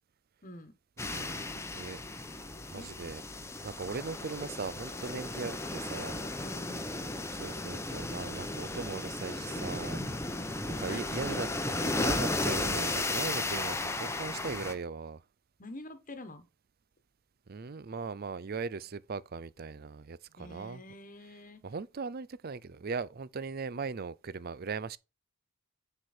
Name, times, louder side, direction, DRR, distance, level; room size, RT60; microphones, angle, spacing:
voice 1, 0.4-0.7 2.7-2.9 6.4-7.1 10.7-11.0 15.6-16.4 20.4-21.6, left 1 dB, 40° left, 1.3 m, -46 dB
sound 1, 1.0-14.7, left 2 dB, 15° left, 0.8 m, -35 dB
voice 2, 1.1-2.0 2.7-3.2 3.6-6.2 7.3-10.0 10.8-11.5 11.8-15.2 17.5-20.8 21.6-25.0, right 4 dB, 45° right, 0.5 m, -39 dB
9.7 x 4.9 x 4.4 m
head